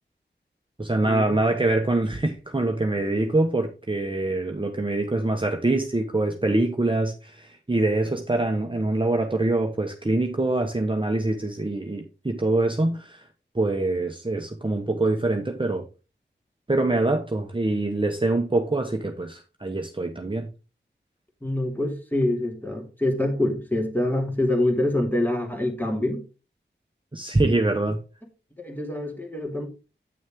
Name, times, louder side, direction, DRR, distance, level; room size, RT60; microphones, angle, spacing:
voice 1, 0.8-13.2 13.5-15.8 16.7-20.5 27.1-28.0, right 2 dB, 25° right, 1.1 m, -24 dB
voice 2, 21.4-26.2 28.6-29.7, left 1 dB, 10° left, 2.4 m, -25 dB
8.9 x 6.3 x 3.7 m
wide cardioid pair, 65°, 20 cm